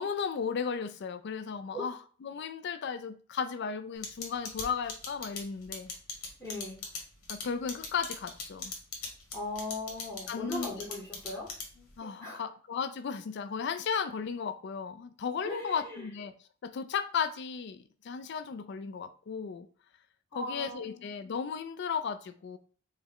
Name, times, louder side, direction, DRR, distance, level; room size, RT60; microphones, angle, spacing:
voice 1, 0.0-5.9 7.3-8.7 10.3-10.7 12.0-16.3 16.6-19.7 20.4-22.6, left 6 dB, 50° left, 0.3 m, -35 dB
sound 1, 4.0-11.9, left 5 dB, 80° left, 1.2 m, -39 dB
voice 2, 6.4-6.8 9.3-12.4 15.4-16.1 20.3-21.1, left 2 dB, 10° left, 0.9 m, -39 dB
4.9 x 2.1 x 3.8 m
head